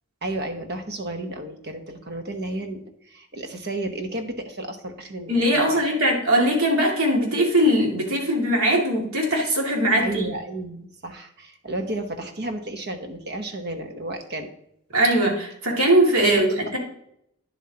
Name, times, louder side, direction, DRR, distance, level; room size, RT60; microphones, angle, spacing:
voice 1, 0.2-5.8 10.0-14.5 16.2-16.5, right 1 dB, 50° right, 6 dB, 1.0 m, -32 dB
voice 2, 5.3-10.2 14.9-16.8, right 1 dB, 85° right, -1 dB, 2.3 m, -20 dB
10.0 x 7.4 x 2.9 m, 0.75 s
head